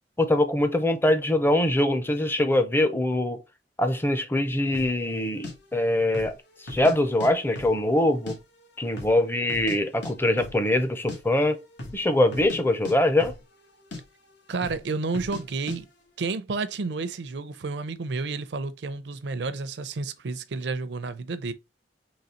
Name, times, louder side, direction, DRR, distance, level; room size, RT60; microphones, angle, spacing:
voice 1, 0.2-3.4 3.8-6.3 6.6-8.4 8.8-11.6 11.9-13.3, left 1 dB, 15° left, 0.6 m, -23 dB
sound 1, 4.7-5.0 5.4-5.5 6.1-6.4 6.7-7.3 7.6-8.4 8.6-8.7 9.0-9.8 10.0-10.1 10.4-10.6 10.9-11.2 11.7-12.0 12.3-12.6 12.8-13.6 13.9-14.0 14.6-14.8 15.1-15.4 15.7-15.8, left 2 dB, 75° left, 1.3 m, -37 dB
voice 2, 14.5-15.9 16.2-21.5, right 4 dB, 75° right, 0.5 m, -31 dB
4.0 x 3.1 x 4.3 m
head